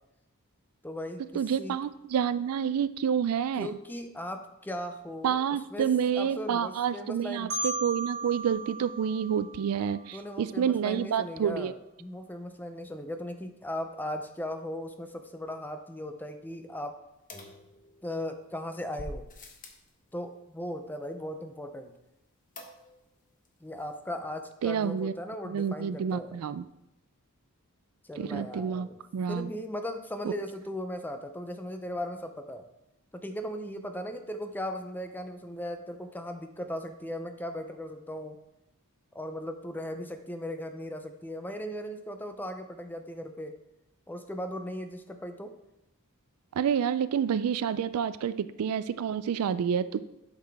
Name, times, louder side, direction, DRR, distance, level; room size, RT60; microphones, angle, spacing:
voice 1, 0.8-1.8 3.6-5.4 5.7-7.5 10.1-17.0 18.0-19.3 20.1-21.9 23.6-26.4 28.0-29.0 29.3-32.6 33.1-38.4 39.1-43.5 44.1-45.5, equal, 10° left, 7 dB, 0.5 m, -37 dB
voice 2, 1.3-3.7 5.2-11.7 24.6-25.1 25.5-26.6 28.2-28.9 29.1-29.5 30.2-30.3 46.6-50.0, right 8 dB, 75° right, 14 dB, 0.3 m, -28 dB
Marimba xylophone, 7.5-10.3, right 2 dB, 55° right, 1.5 m, -36 dB
sound 1, 17.3-18.3 19.0-19.9 22.6-23.1 23.4-23.5 23.8-23.9, left 1 dB, 40° left, 0.9 m, -45 dB
8.1 x 5.9 x 3.4 m, 0.88 s
head